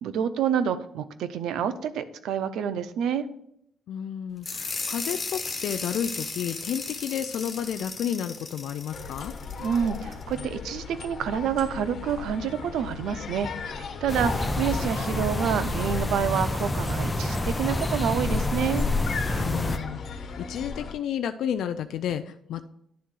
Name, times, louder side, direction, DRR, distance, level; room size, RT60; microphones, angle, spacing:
voice 1, 0.0-3.2 9.6-18.9, right 8 dB, 80° right, 12 dB, 0.6 m, -28 dB
voice 2, 3.9-9.3 19.3-22.6, left 9 dB, 75° left, 9 dB, 0.4 m, -31 dB
sound 1, 4.4-10.2, left 4 dB, 30° left, 1.4 m, -35 dB
sound 2, 8.9-20.9, left 5 dB, 55° left, 1.2 m, -37 dB
sound 3, 14.1-19.8, left 2 dB, 15° left, 0.7 m, -28 dB
10.5 x 3.7 x 6.1 m, 0.74 s
cardioid pair, 90°, 0 cm